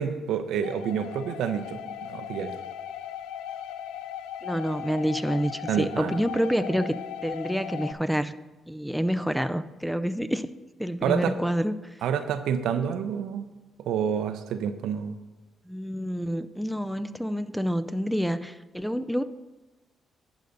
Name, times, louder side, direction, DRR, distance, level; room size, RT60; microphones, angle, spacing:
voice 1, 0.0-2.6 5.7-6.2 11.0-11.3 12.0-13.5 13.9-15.2, right 8 dB, 80° right, 9 dB, 0.6 m, -28 dB
sound 1, 0.6-7.9, left 10 dB, 85° left, 0.4 m, -38 dB
voice 2, 4.4-8.3 8.7-10.5 10.8-11.7 15.7-19.2, equal, ahead, 10 dB, 0.5 m, -28 dB
11.0 x 4.0 x 6.6 m, 1.1 s
supercardioid pair, 55°, 0 cm